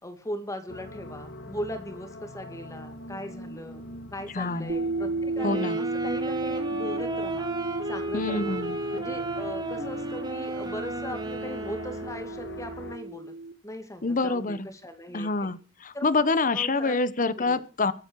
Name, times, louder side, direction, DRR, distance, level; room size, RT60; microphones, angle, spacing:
voice 1, 0.0-3.8 4.1-7.5 7.9-8.6 8.9-13.3 13.6-15.5 15.9-17.0 17.4-17.6, equal, 15° left, 7 dB, 2.4 m, -39 dB
sound 1, 0.7-13.0, left 3 dB, 60° left, 1.9 m, -43 dB
voice 2, 4.3-4.7 5.4-5.8 8.1-8.8 14.0-14.7 15.1-17.9, left 3 dB, 45° left, 16 dB, 1.0 m, -26 dB
sound 2, 4.7-13.5, right 3 dB, 75° right, 1.6 m, -33 dB
sound 3, 5.3-12.4, right 2 dB, 20° right, 2.1 m, -35 dB
24.0 x 8.7 x 4.7 m, 0.36 s
head